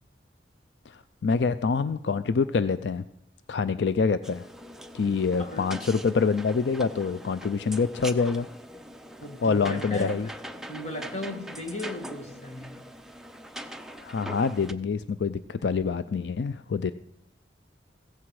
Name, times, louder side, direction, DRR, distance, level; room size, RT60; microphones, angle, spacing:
voice 1, 0.9-3.1 3.5-4.5 4.9-8.5 9.4-10.3 14.0-16.9, left 5 dB, 70° left, 13 dB, 0.4 m, -26 dB
sound 1, 4.2-14.7, right 1 dB, ahead, 0.6 m, -42 dB
voice 2, 9.2-12.8, left 1 dB, 40° left, 4 dB, 1.9 m, -36 dB
15.5 x 14.5 x 4.8 m, 0.85 s
head